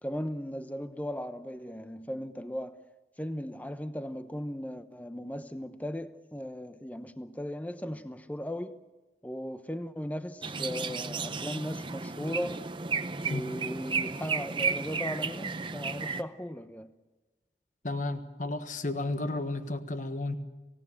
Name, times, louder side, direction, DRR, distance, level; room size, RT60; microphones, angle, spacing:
voice 1, 0.0-2.8 3.2-8.8 9.2-12.6 13.3-16.9, equal, 10° left, 0.9 m, -37 dB
sound 1, 10.4-16.2, right 5 dB, 25° right, 0.7 m, -33 dB
voice 2, 17.8-20.4, left 2 dB, 45° left, 1.5 m, -32 dB
27.5 x 17.5 x 7.3 m
head